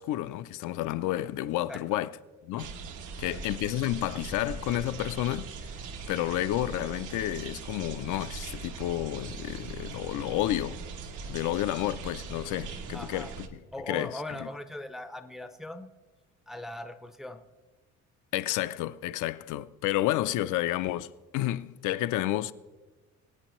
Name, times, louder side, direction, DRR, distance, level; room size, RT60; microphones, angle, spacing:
voice 1, 0.0-2.1 2.4-2.7 3.2-5.5 6.1-10.8 11.3-14.5 18.3-22.5, left 14 dB, 85° left, 0.5 m, -31 dB
voice 2, 1.7-2.0 3.1-3.2 3.7-3.8 12.9-13.3 13.7-15.9 16.5-17.4, left 1 dB, ahead, 0.4 m, -40 dB
sound 1, 2.6-13.5, right 5 dB, 85° right, 1.1 m, -40 dB
22.5 x 8.7 x 3.1 m
cardioid pair, 170°, 30 cm